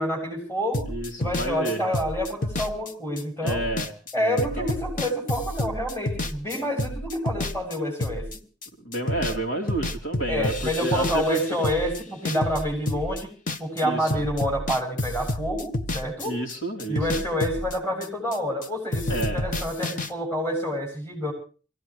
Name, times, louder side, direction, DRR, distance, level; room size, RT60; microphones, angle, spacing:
voice 1, 0.0-0.9 1.2-3.6 4.1-8.4 10.3-16.3 16.9-21.3, equal, 15° left, 1 dB, 7.5 m, -28 dB
sound 1, 0.7-9.4 9.7-13.8 14.1-18.7 18.9-20.1, left 1 dB, 45° left, 1.1 m, -30 dB
voice 2, 0.9-1.8 3.4-3.9 4.2-4.7 8.8-10.5 10.8-11.4 13.8-14.2 16.2-17.2 19.1-19.4, right 2 dB, 85° left, 2 dB, 3.6 m, -30 dB
24.5 x 17.0 x 3.2 m, 0.37 s
head